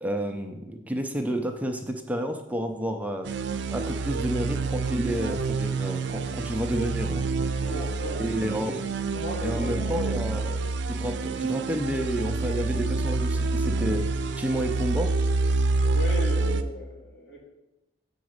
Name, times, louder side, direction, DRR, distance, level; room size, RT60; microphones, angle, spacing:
voice 1, 0.0-3.3 3.7-7.2 8.2-8.8 9.4-10.6 10.9-15.1, equal, 10° right, 4 dB, 0.5 m, -30 dB
sound 1, 3.3-16.6, right 3 dB, 80° right, 0.5 m, -27 dB
voice 2, 7.6-8.7 9.1-10.2 15.9-17.4, right 1 dB, 75° left, -6 dB, 2.8 m, -36 dB
7.0 x 4.0 x 6.4 m, 0.95 s
head